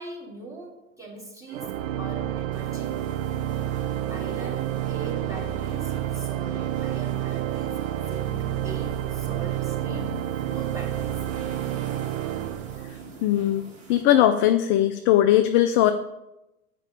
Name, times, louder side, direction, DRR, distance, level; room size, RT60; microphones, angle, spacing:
voice 1, 0.0-3.1 3.5-3.8 4.1-10.1 10.5-11.2, right 3 dB, 10° right, -3 dB, 2.5 m, -41 dB
Organ, 1.5-13.3, right 12 dB, 65° right, 0.6 m, -29 dB
sound 1, 2.5-14.0, right 3 dB, 40° right, 3.4 m, -45 dB
voice 2, 13.2-13.6 13.9-15.9, left 12 dB, 30° left, 9 dB, 0.4 m, -19 dB
8.4 x 5.0 x 5.2 m, 0.93 s
hypercardioid pair, 100°, 42 cm